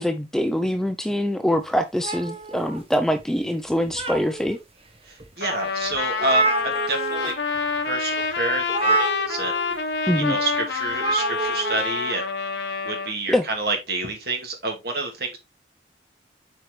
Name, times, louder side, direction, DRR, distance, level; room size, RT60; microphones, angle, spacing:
voice 1, 0.0-4.6 10.1-10.4 13.3-13.4, equal, 5° left, 0.4 m, -24 dB
sound 1, 2.0-3.2 3.7-4.6 5.2-5.3 5.7-5.8 5.9-7.3 7.6-7.8 8.7-9.7 10.9-11.8, right 3 dB, 30° right, 1.0 m, -27 dB
voice 2, 5.1-7.3 7.8-9.6 10.1-12.2 12.8-15.4, right 3 dB, 60° right, 2.0 m, -28 dB
Trumpet, 5.4-13.1, left 5 dB, 75° left, 1.0 m, -27 dB
7.7 x 4.5 x 3.1 m
head